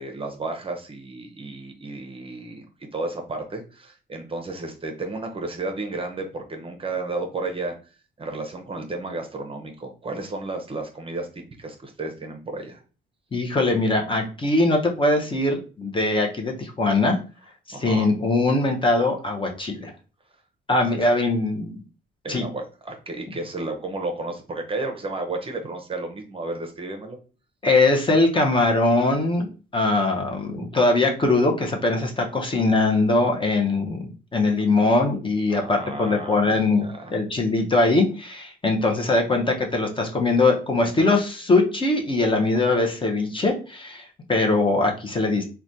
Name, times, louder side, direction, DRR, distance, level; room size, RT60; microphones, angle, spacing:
voice 1, 0.0-2.7 2.9-7.7 8.2-12.8 17.7-18.1 22.2-27.2 35.5-37.2, right 2 dB, 25° right, 4 dB, 0.6 m, -32 dB
voice 2, 13.3-17.2 17.7-19.9 20.7-21.8 22.3-22.4 27.6-34.0 34.3-45.4, left 2 dB, 25° left, 2 dB, 0.6 m, -21 dB
3.2 x 2.2 x 2.6 m, 0.35 s
cardioid pair, 90°, 20 cm